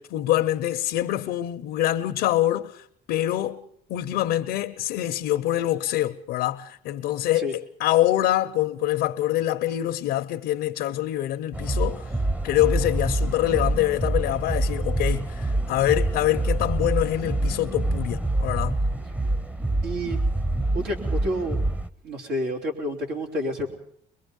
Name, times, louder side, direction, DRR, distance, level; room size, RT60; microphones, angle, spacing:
voice 1, 0.1-3.6 3.9-12.1 12.4-18.8, left 14 dB, 85° left, 0.8 m, -25 dB
sound 1, 11.5-21.9, right 2 dB, 10° right, 0.7 m, -26 dB
voice 2, 19.8-20.2 20.7-21.6 22.0-23.7, equal, 90° right, 3.9 m, -29 dB
22.5 x 22.5 x 5.4 m
cardioid pair, 110°, 17 cm